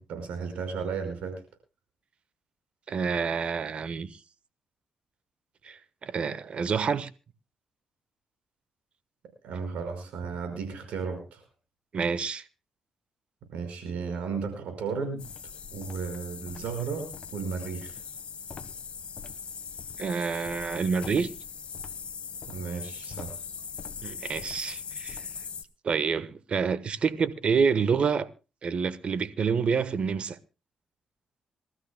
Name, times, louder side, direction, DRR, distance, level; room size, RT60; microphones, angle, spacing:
voice 1, 0.0-1.4 9.4-11.4 13.5-15.2 15.7-18.0 22.5-23.4, right 5 dB, 85° right, 5.1 m, -34 dB
voice 2, 2.9-4.1 5.6-7.1 11.9-12.4 20.0-21.3 24.0-25.2 25.8-28.3 28.6-30.4, right 5 dB, 60° right, 1.1 m, -28 dB
sound 1, 15.2-25.6, left 6 dB, 55° left, 1.2 m, -40 dB
26.5 x 13.0 x 2.2 m
cardioid pair, 65°, 2 cm